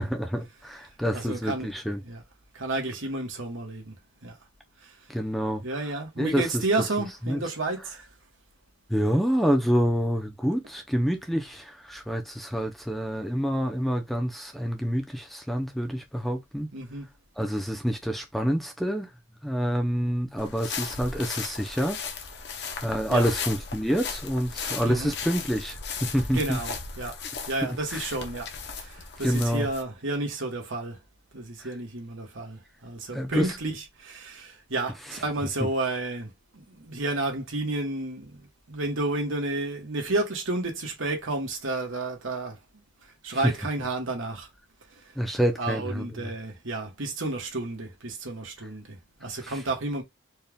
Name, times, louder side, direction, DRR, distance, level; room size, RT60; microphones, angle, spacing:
voice 1, 0.0-2.0 5.1-5.6 6.2-6.6 7.2-7.4 8.9-16.7 17.4-19.1 19.4-22.0 22.8-26.6 27.6-28.0 29.2-29.7 31.6-31.7 33.1-33.6 35.1-35.2 35.6-35.7 43.4-43.5 45.2-46.3 49.4-49.6, equal, ahead, 0.6 m, -27 dB
voice 2, 1.1-1.7 2.0-2.2 2.5-3.9 4.2-4.3 4.8-4.9 5.6-8.1 16.7-17.1 23.1-23.3 24.8-25.1 26.3-27.2 27.5-31.0 31.3-42.6 43.2-44.5 45.6-50.0, right 2 dB, 85° right, 1.5 m, -31 dB
sound 1, 20.4-29.8, left 5 dB, 55° left, 0.8 m, -36 dB
4.4 x 2.4 x 3.5 m
head